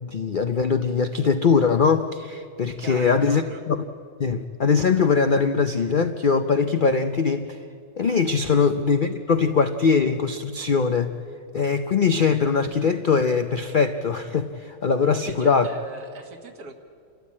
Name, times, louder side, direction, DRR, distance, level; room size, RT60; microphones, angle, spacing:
voice 1, 0.0-3.8 4.2-7.6 8.0-11.1 11.5-15.7, left 5 dB, 80° left, 7 dB, 0.4 m, -21 dB
voice 2, 2.8-3.6 8.5-8.7 15.1-16.7, right 3 dB, 60° right, 4 dB, 2.2 m, -39 dB
28.5 x 13.5 x 8.6 m, 2.4 s
omnidirectional pair, 1.9 m